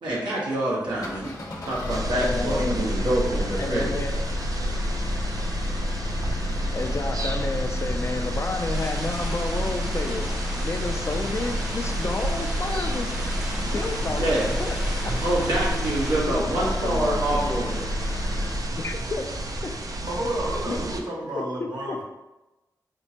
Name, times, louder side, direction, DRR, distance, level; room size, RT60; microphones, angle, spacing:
voice 1, 0.0-1.3 1.7-4.0 14.2-14.5 15.2-17.9, right 1 dB, 90° right, -7 dB, 1.1 m, -26 dB
sound 1, 0.9-18.7, left 1 dB, 60° left, 1.0 m, -31 dB
sound 2, 1.9-21.0, right 1 dB, 50° right, 0.4 m, -31 dB
voice 2, 2.2-2.8 3.6-4.1 6.7-14.8 15.0-15.1 16.3-17.5 18.8-19.3 19.6-19.7 20.7-20.8 21.3-22.0, left 3 dB, 40° left, 5 dB, 0.4 m, -31 dB
sound 3, 8.7-16.2, equal, 15° right, 0.7 m, -39 dB
voice 3, 20.1-22.0, right 1 dB, 70° right, -3 dB, 0.9 m, -30 dB
4.3 x 2.1 x 2.8 m, 1.0 s
cardioid pair, 55°, 8 cm